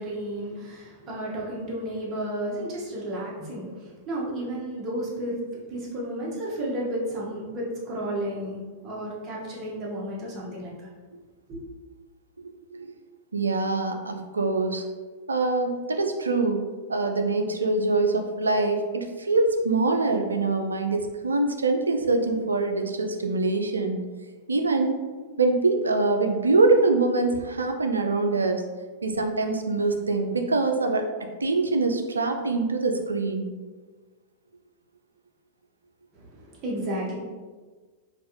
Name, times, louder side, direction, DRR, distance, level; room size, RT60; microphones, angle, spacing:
voice 1, 0.0-5.4 5.7-10.9 11.5-11.6 36.1-37.1, right 1 dB, 35° right, -4 dB, 0.9 m, -32 dB
voice 2, 12.4-12.9 13.3-14.8 15.3-16.6 16.9-24.0 24.5-25.0 25.4-28.6 29.0-31.0 31.4-33.5, right 3 dB, 85° right, 5 dB, 0.3 m, -24 dB
3.0 x 2.3 x 2.9 m, 1.4 s
figure-of-eight pair, 100°, 0 cm